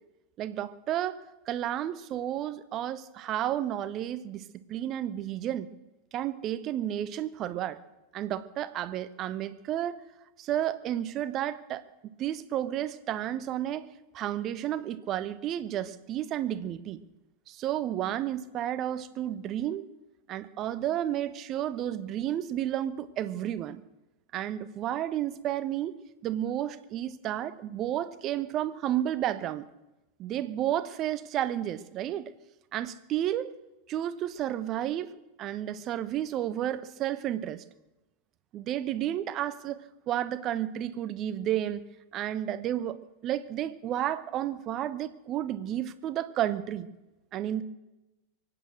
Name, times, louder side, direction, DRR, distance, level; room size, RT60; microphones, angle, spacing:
voice 1, 0.4-5.7 6.1-7.8 8.1-10.0 10.4-13.9 14.1-17.0 17.5-19.9 20.3-23.8 24.3-29.7 30.2-32.3 32.7-33.5 33.9-37.6 38.5-41.8 42.1-43.0 43.2-46.9 47.3-47.6, right 11 dB, 35° right, 14 dB, 0.8 m, -32 dB
23.5 x 9.0 x 6.3 m, 1.0 s
figure-of-eight pair, 90°, 0 cm